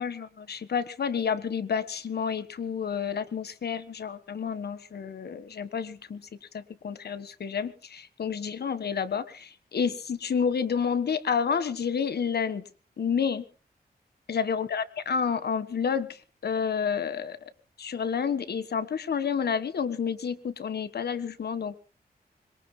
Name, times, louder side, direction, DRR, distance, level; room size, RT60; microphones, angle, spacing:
voice 1, 0.0-12.6 13.0-13.4 14.3-17.4 17.8-21.8, left 6 dB, 80° left, 13 dB, 1.5 m, -30 dB
25.5 x 22.5 x 2.2 m, 0.37 s
wide cardioid pair, 85°, 17 cm